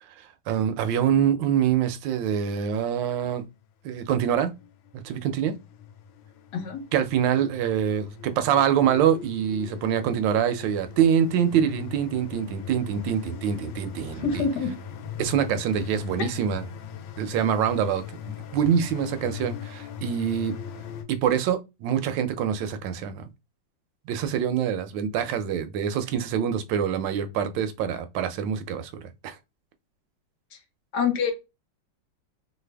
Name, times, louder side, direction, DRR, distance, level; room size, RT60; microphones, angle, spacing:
voice 1, 0.5-3.4 3.8-4.5 4.9-5.5 6.9-14.4 15.2-16.6 17.2-18.0 18.5-20.5 21.1-23.3 24.1-29.4, right 8 dB, 75° right, 1.2 m, -25 dB
sound 1, 3.6-21.0, left 8 dB, 85° left, 1.3 m, -40 dB
voice 2, 14.1-14.8 30.5-30.6 30.9-31.3, left 6 dB, 65° left, 1.3 m, -26 dB
3.3 x 2.1 x 3.3 m
omnidirectional pair, 2.1 m